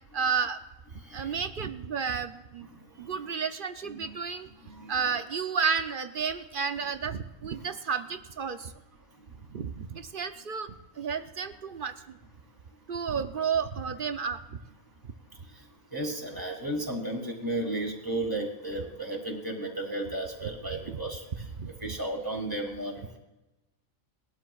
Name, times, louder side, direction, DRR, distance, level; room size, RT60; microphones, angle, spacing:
voice 1, 0.1-0.6 1.1-2.7 3.0-4.5 4.9-8.7 9.5-10.7 11.0-11.9 12.9-14.4 20.9-21.0 21.6-21.7, right 6 dB, 50° right, 10 dB, 0.7 m, -31 dB
voice 2, 4.6-4.9 7.6-7.7 15.9-21.2 21.8-23.2, right 1 dB, 15° right, 0 dB, 2.9 m, -34 dB
20.5 x 12.5 x 2.4 m, 1.0 s
omnidirectional pair, 1.4 m